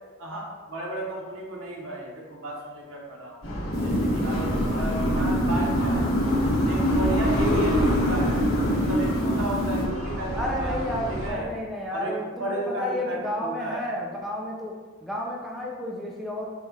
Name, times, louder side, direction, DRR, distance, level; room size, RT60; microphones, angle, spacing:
voice 1, 0.2-3.4 3.8-6.1 6.6-8.4 8.7-10.8 11.1-11.5 11.9-13.9, right 1 dB, 65° right, -2 dB, 1.0 m, -33 dB
sound 1, 3.4-11.3, equal, 70° left, 1.3 m, -29 dB
sound 2, 3.7-9.8, equal, 50° left, 0.8 m, -25 dB
voice 2, 10.3-16.5, left 1 dB, ahead, -3 dB, 0.4 m, -32 dB
4.8 x 2.4 x 4.0 m, 1.4 s
head